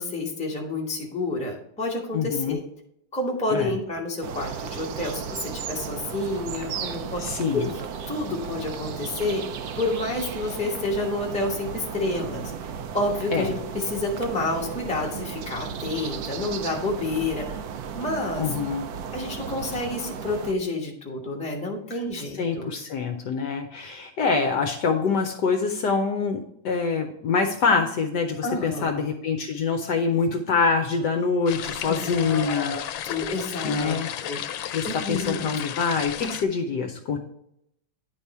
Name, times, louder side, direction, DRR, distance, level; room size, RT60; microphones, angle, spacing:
voice 1, 0.0-2.6 3.1-9.4 9.7-17.6 17.9-18.5 19.1-22.7 28.4-29.1 31.9-35.5, left 2 dB, 5° left, -2 dB, 0.8 m, -29 dB
voice 2, 2.1-2.6 3.5-3.7 6.8-6.9 7.2-7.7 13.3-13.5 18.4-18.9 22.1-32.8 33.6-34.1 34.7-37.2, left 5 dB, 70° left, 4 dB, 1.2 m, -25 dB
sound 1, 4.2-20.5, right 7 dB, 80° right, 0.8 m, -35 dB
sound 2, 31.5-36.4, left 10 dB, 85° left, 1.4 m, -33 dB
10.0 x 3.5 x 4.2 m, 0.75 s
omnidirectional pair, 2.2 m